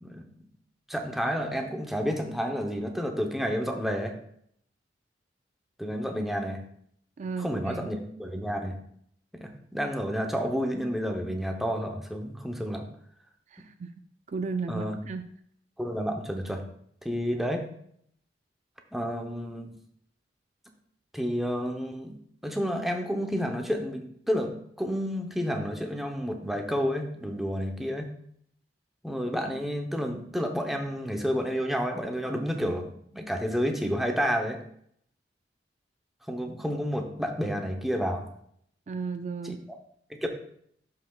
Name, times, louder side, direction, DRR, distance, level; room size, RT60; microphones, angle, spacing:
voice 1, 0.9-4.1 5.8-6.6 7.4-8.8 9.3-12.9 14.7-15.0 15.8-16.6 17.0-17.6 18.9-19.7 21.1-22.1 22.4-24.5 24.8-28.1 29.0-34.6 36.3-38.3 39.4-39.5 40.1-40.3, equal, ahead, 2 dB, 0.8 m, -30 dB
voice 2, 7.2-7.8 13.5-13.9 14.3-15.2 38.9-39.6, right 4 dB, 40° right, 8 dB, 0.4 m, -34 dB
11.0 x 5.7 x 2.4 m, 0.67 s
head